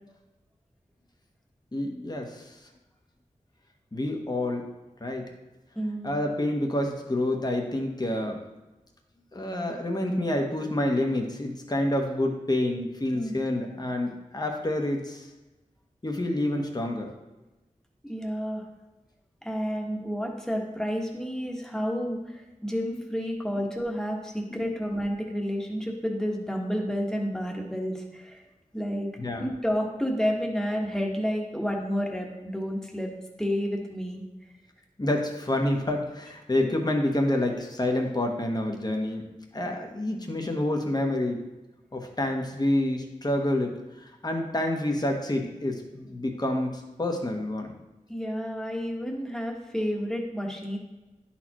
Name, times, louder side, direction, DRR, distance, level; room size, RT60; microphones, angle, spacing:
voice 1, 1.7-2.6 3.9-4.7 5.0-5.3 6.0-8.4 9.3-15.3 16.0-17.1 24.5-24.6 29.2-29.5 35.0-39.3 39.5-41.4 41.9-47.7, left 1 dB, 30° left, 2 dB, 1.0 m, -28 dB
voice 2, 5.7-6.1 13.1-13.3 18.0-18.6 19.4-28.4 28.7-33.1 33.4-34.2 36.6-36.7 48.1-50.8, equal, 5° left, 0 dB, 1.3 m, -30 dB
10.5 x 4.3 x 3.0 m, 1.1 s
wide cardioid pair, 50°, 14 cm